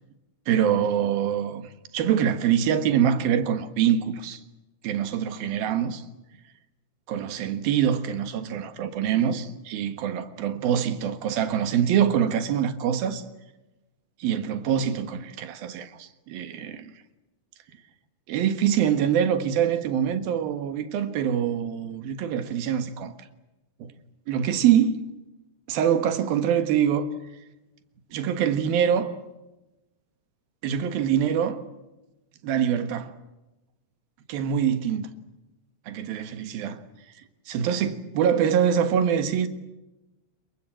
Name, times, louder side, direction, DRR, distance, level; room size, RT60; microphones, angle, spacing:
voice 1, 0.5-4.4 4.8-6.0 7.1-13.2 14.2-16.9 18.3-23.1 24.3-25.0 25.7-27.1 28.1-29.1 30.6-31.6 32.4-33.1 34.3-35.1 35.9-36.8 37.5-39.5, right 9 dB, 80° right, 3.4 m, -24 dB
27.5 x 23.5 x 7.7 m
omnidirectional pair, 4.2 m